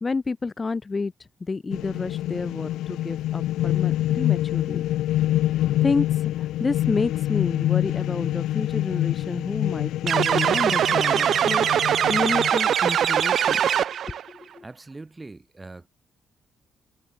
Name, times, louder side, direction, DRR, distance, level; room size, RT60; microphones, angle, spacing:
voice 1, 0.0-1.1 1.4-4.8 5.8-11.7 12.1-13.6 14.1-14.6, left 4 dB, 30° left, 1.0 m, -29 dB
sound 1, 1.7-12.5, left 14 dB, 85° left, 0.4 m, -26 dB
sound 2, 10.1-14.2, right 9 dB, 60° right, 0.3 m, -21 dB
voice 2, 14.6-15.9, right 2 dB, 20° right, 2.1 m, -42 dB
cardioid pair, 90°, 0 cm